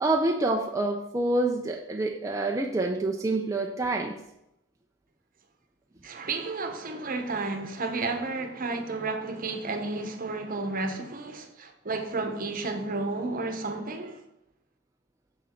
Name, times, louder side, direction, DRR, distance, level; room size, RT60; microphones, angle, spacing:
voice 1, 0.0-4.2, right 2 dB, 15° right, 0.4 m, -27 dB
voice 2, 6.0-14.2, right 3 dB, 45° right, 1.0 m, -32 dB
7.1 x 6.2 x 4.4 m
head